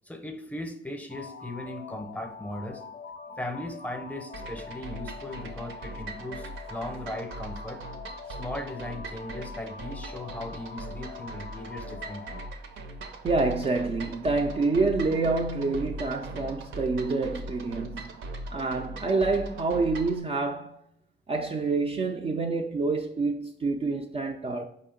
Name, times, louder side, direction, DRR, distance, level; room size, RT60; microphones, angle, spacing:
voice 1, 0.1-2.8 3.4-7.8 8.3-12.4, left 1 dB, 5° left, 0.7 m, -38 dB
sound 1, 1.1-12.5, left 5 dB, 45° left, 0.4 m, -44 dB
sound 2, 4.3-20.2, right 2 dB, 75° right, 0.7 m, -40 dB
voice 2, 13.2-18.0 18.5-20.8 21.3-24.6, right 3 dB, 30° right, 0.4 m, -27 dB
4.9 x 2.8 x 3.7 m
cardioid pair, 90°, 20 cm